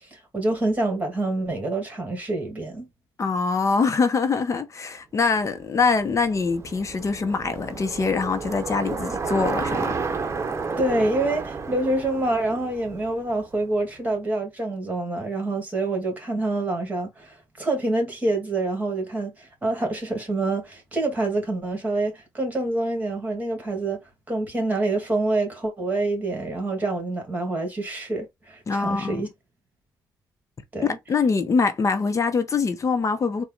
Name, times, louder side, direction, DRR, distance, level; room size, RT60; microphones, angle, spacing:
voice 1, 0.1-2.9 10.8-24.0 24.3-29.3 30.7-30.9, right 2 dB, 20° right, 2.3 m, -26 dB
voice 2, 3.2-10.0 28.7-29.2 30.8-33.4, left 4 dB, 40° left, 0.9 m, -24 dB
Bicycle, 5.5-13.8, right 4 dB, 35° right, 0.9 m, -32 dB
4.2 x 2.4 x 3.9 m
cardioid pair, 80°, 8 cm